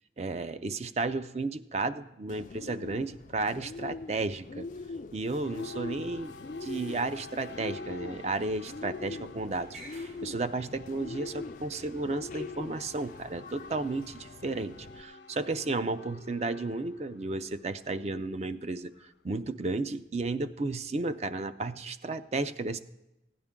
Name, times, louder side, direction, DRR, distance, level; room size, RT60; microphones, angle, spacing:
voice 1, 0.2-4.7 5.1-6.3 6.6-18.9 19.2-22.8, right 3 dB, 35° right, 12 dB, 0.4 m, -33 dB
Bird, 2.3-15.0, left 3 dB, 45° left, 0.4 m, -43 dB
sound 1, 5.4-19.7, left 3 dB, 85° left, 0.8 m, -50 dB
sound 2, 6.6-6.9 8.7-10.8 11.4-11.5 12.7-12.8 13.0-13.3 14.0-14.2, right 2 dB, 55° right, 5.1 m, -54 dB
16.5 x 10.0 x 3.7 m, 0.94 s
head